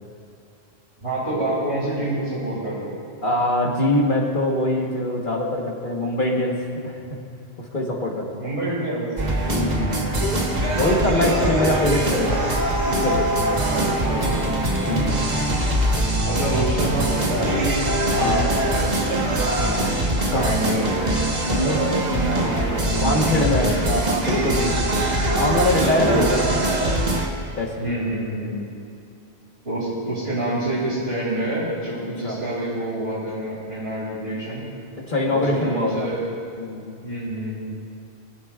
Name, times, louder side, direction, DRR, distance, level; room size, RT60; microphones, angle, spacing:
voice 1, 1.0-3.0 8.4-9.1 10.8-10.9 11.2-12.0 13.8-14.4 16.3-20.0 20.3-20.9 21.6-23.9 25.2-25.5 26.1-26.6 27.8-28.6 29.6-34.7 35.2-36.2 37.0-37.6, right 1 dB, 70° right, -9 dB, 2.8 m, -27 dB
voice 2, 3.2-6.9 7.6-8.4 9.4-10.1 10.7-12.4 12.8-13.5 14.9-15.2 18.2-18.5 20.3-20.6 21.4-21.9 23.0-24.9 25.3-26.6 27.0-27.2 27.5-27.9 32.2-32.4 35.0-36.1 36.6-37.0, left 1 dB, 50° left, -2 dB, 1.4 m, -23 dB
sound 1, 9.2-27.3, right 1 dB, 40° right, 1.2 m, -22 dB
22.5 x 10.0 x 2.4 m, 2.6 s
omnidirectional pair, 1.1 m